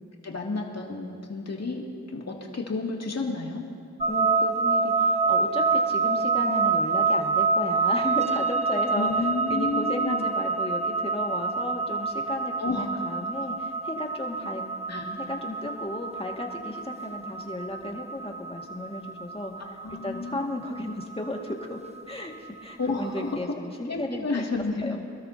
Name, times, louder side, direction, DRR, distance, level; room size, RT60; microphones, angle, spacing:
voice 1, 0.2-1.8 2.1-3.6 8.9-10.3 12.6-13.0 14.9-15.1 19.8-20.7 22.8-23.4 23.9-25.0, left 3 dB, 55° left, -1 dB, 2.5 m, -31 dB
sound 1, 4.0-23.1, right 4 dB, 20° right, 1.1 m, -27 dB
voice 2, 4.1-14.6 14.9-19.7 20.0-21.8 22.1-22.3 22.6-24.3 24.8-25.0, left 1 dB, 20° left, 0 dB, 2.0 m, -34 dB
25.5 x 13.0 x 2.8 m, 2.4 s
cardioid pair, 55°, 31 cm